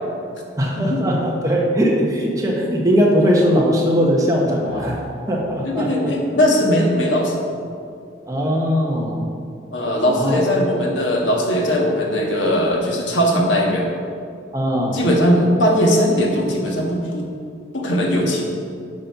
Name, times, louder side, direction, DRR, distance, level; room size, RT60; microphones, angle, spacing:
voice 1, 0.6-5.0 5.3-6.1 8.3-9.2 10.0-10.4 14.5-15.0, equal, 20° right, -2 dB, 1.2 m, -19 dB
sound 1, 4.6-6.2, right 1 dB, 25° left, 1.3 m, -37 dB
voice 2, 5.6-7.4 9.7-13.9 14.9-17.3 17.7-18.4, equal, 80° left, 0 dB, 1.5 m, -19 dB
11.0 x 4.4 x 5.6 m, 2.3 s
head